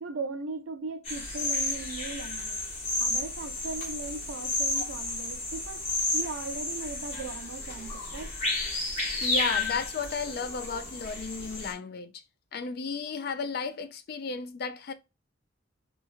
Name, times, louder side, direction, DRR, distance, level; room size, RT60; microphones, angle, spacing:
voice 1, 0.0-2.6 3.0-8.3, right 3 dB, 80° right, 0.5 m, -38 dB
sound 1, 1.1-11.7, left 2 dB, 30° left, 1.0 m, -32 dB
voice 2, 9.2-12.1 12.5-14.9, left 5 dB, 50° left, 0.3 m, -34 dB
3.0 x 2.3 x 2.4 m
head